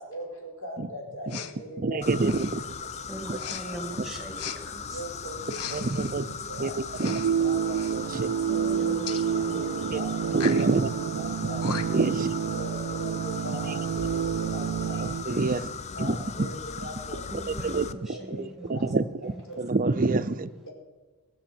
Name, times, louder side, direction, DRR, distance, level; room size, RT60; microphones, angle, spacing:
voice 1, 0.0-2.5 3.0-3.8 4.9-7.1 7.4-8.0 8.5-10.8 11.2-12.1 12.5-15.4 15.9-17.5 18.1-18.9 19.5-19.6, equal, 60° left, -1 dB, 4.3 m, -41 dB
Respiratory sounds, 1.3-1.6 2.2-2.6 3.4-3.6 4.4-4.6 5.4-6.1 6.9-7.3 7.6-7.9 9.1-9.2 10.3-10.7 11.3-11.4 11.6-12.1, left 8 dB, 85° left, 0.9 m, -37 dB
voice 2, 1.8-2.7 3.3-3.4 5.7-6.3 6.6-6.7 7.0-7.2 7.9-8.3 9.9-10.0 10.3-10.9 11.6-12.4 15.0-15.7 16.0-16.5 17.5-17.9 18.3-20.5, right 3 dB, 40° right, 12 dB, 0.6 m, -27 dB
sound 1, 2.0-17.9, left 6 dB, 30° left, 0.5 m, -38 dB
voice 3, 3.1-5.0 8.4-10.0 10.3-10.4 17.3-18.9 19.2-19.6, right 1 dB, ahead, 2 dB, 2.3 m, -42 dB
sound 2, 5.4-15.2, right 8 dB, 90° right, 0.3 m, -29 dB
18.5 x 7.1 x 7.6 m, 1.3 s
head